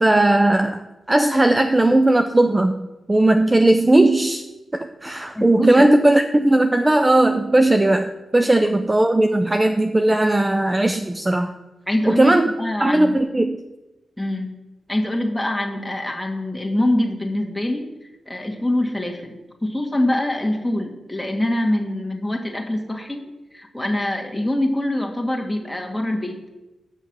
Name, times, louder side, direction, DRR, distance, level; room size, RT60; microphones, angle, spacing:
voice 1, 0.0-0.8 1.1-4.4 4.7-11.5 12.1-12.5 12.8-13.6, right 1 dB, 20° right, 7 dB, 0.5 m, -17 dB
voice 2, 5.3-5.9 11.9-13.2 14.2-14.6 14.9-17.9 18.3-19.4 19.6-26.4, left 1 dB, 5° left, 0 dB, 1.8 m, -24 dB
8.2 x 6.3 x 6.1 m, 1.0 s
cardioid pair, 55°, 0 cm